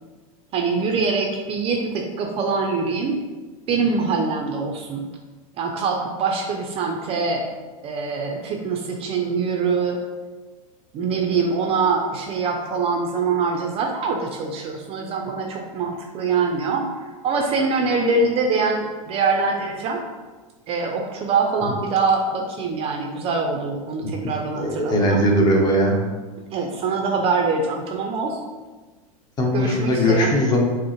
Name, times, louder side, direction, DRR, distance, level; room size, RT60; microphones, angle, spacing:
voice 1, 0.5-3.2 3.7-5.0 5.6-7.5 7.8-10.0 10.9-16.8 17.2-20.0 20.7-25.2 26.5-28.4 29.5-30.3, right 4 dB, 30° right, 2 dB, 0.4 m, -24 dB
voice 2, 24.5-26.0 29.4-30.6, equal, 20° left, 0 dB, 0.7 m, -19 dB
5.3 x 2.0 x 2.9 m, 1.3 s
supercardioid pair, 125°, 18 cm